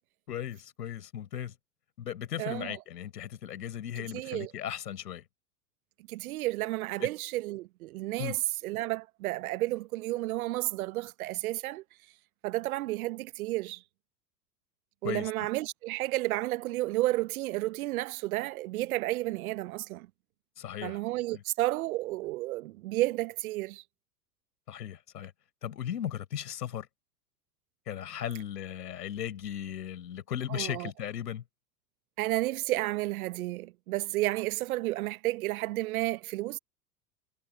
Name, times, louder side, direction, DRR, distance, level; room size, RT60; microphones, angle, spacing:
voice 1, 0.3-1.5 2.0-5.2 7.0-7.1 8.2-8.4 15.0-15.5 20.6-21.0 21.3-21.4 24.7-25.3 25.6-26.9 27.9-31.4, left 10 dB, 70° left, 4.5 m, -37 dB
voice 2, 2.4-2.7 4.1-4.5 6.1-11.8 12.4-13.8 15.0-20.1 20.8-23.8 30.5-30.9 32.2-36.6, right 18 dB, 60° right, 1.1 m, -32 dB
figure-of-eight pair, 85°, 49 cm